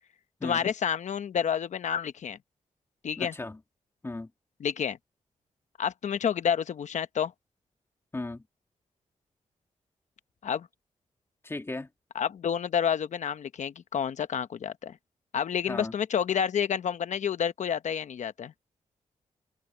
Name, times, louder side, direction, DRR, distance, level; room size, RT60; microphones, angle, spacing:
voice 1, 0.4-2.4 3.0-3.3 4.6-5.0 5.8-7.3 10.4-10.7 12.1-15.0 15.3-18.5, left 8 dB, 75° left, 1.0 m, -29 dB
voice 2, 3.2-3.6 4.0-4.3 8.1-8.4 11.4-11.9 15.7-15.9, left 2 dB, 20° left, 2.2 m, -36 dB
wide cardioid pair, 105°, 12 cm